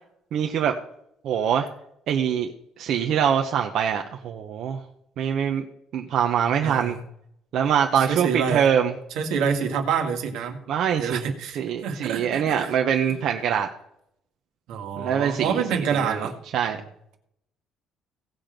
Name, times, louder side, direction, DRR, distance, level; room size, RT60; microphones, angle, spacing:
voice 1, 0.3-0.7 1.2-1.7 2.1-2.5 2.8-4.8 5.2-5.6 5.9-6.9 7.5-8.9 10.7-11.2 11.6-13.7 15.0-16.3 16.5-16.8, right 8 dB, 65° right, 3 dB, 0.9 m, -24 dB
voice 2, 6.6-7.0 8.1-8.6 9.2-10.6 11.0-12.7 14.7-16.3, right 6 dB, 85° right, 4 dB, 1.7 m, -27 dB
17.0 x 6.0 x 5.2 m, 0.76 s
cardioid pair, 130°, 0 cm